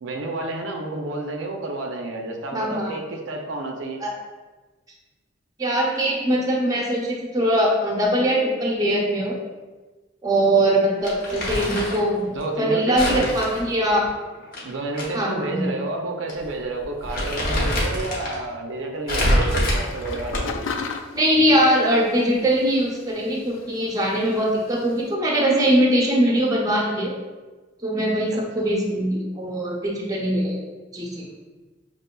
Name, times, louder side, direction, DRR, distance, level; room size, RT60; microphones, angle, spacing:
voice 1, 0.0-4.0 12.3-13.2 14.6-20.6 28.3-28.7, right 2 dB, 75° right, 2 dB, 0.5 m, -30 dB
voice 2, 2.5-3.0 4.0-4.1 5.6-9.4 10.2-12.3 12.6-14.1 15.1-15.7 21.1-27.1 27.8-30.6 30.9-31.3, right 1 dB, 20° right, -2 dB, 0.7 m, -21 dB
Crumpling crinkling, 11.0-12.1 13.0-15.1 15.4-15.5 16.3-16.5 16.8-18.4 19.1-20.7, equal, 50° left, 0.9 m, -25 dB
sound 1, 19.5-25.1, left 5 dB, 75° left, 0.4 m, -37 dB
5.4 x 3.0 x 2.2 m, 1.3 s
head